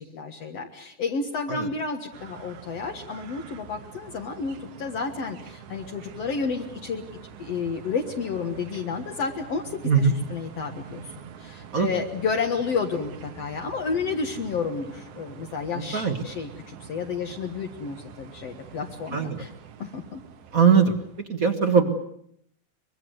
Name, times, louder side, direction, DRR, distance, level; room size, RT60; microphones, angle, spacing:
voice 1, 0.0-7.0 7.4-11.0 11.4-19.5 19.8-20.2, left 5 dB, 60° left, 2 dB, 2.4 m, -31 dB
sound 1, 2.1-21.3, right 8 dB, 80° right, 2.7 m, -45 dB
voice 2, 15.7-16.2 19.1-19.4 20.5-21.0 21.3-21.9, right 6 dB, 40° right, 7 dB, 1.4 m, -21 dB
24.0 x 22.0 x 7.9 m, 0.70 s
omnidirectional pair, 3.4 m